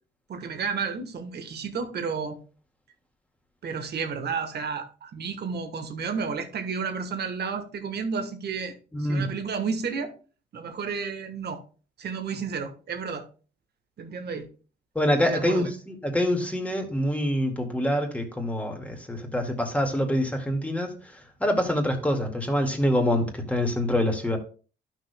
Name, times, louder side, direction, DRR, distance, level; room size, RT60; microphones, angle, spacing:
voice 1, 0.3-2.4 3.6-8.7 9.0-10.1 10.5-11.6 12.0-13.2 14.0-14.5 15.2-15.7, right 5 dB, 55° right, 6 dB, 1.3 m, -31 dB
voice 2, 8.9-9.3 15.0-20.9 21.4-24.4, equal, 5° left, 2 dB, 1.9 m, -25 dB
11.5 x 6.2 x 2.2 m, 0.37 s
cardioid pair, 90°, 20 cm